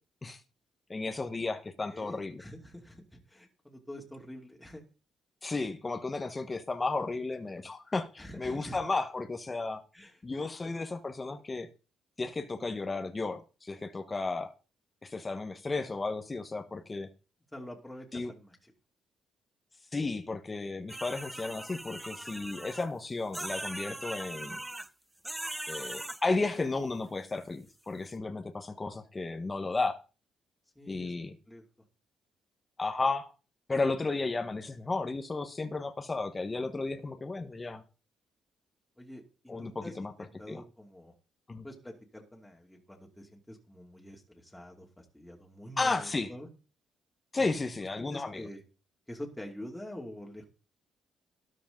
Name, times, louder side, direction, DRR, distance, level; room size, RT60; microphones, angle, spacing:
voice 1, 0.9-2.4 5.4-9.8 10.2-11.7 12.2-14.5 15.0-17.1 18.1-18.3 19.9-24.6 25.7-30.0 30.9-31.3 32.8-33.3 33.7-37.8 39.5-40.1 40.5-40.6 41.5-41.6 45.8-46.3 47.3-48.4, left 3 dB, 25° left, 7 dB, 1.3 m, -33 dB
voice 2, 1.8-4.8 8.2-8.8 9.9-10.2 10.6-10.8 17.5-18.7 30.7-31.1 31.5-31.6 39.0-41.1 41.6-46.5 47.3-47.7 48.0-48.6 49.1-50.5, equal, 5° left, 0 dB, 2.7 m, -46 dB
sound 1, 20.9-22.9 23.3-24.9 25.2-26.2, right 1 dB, 10° right, 0.5 m, -40 dB
13.0 x 10.0 x 3.8 m, 0.33 s
cardioid pair, 90°, 0 cm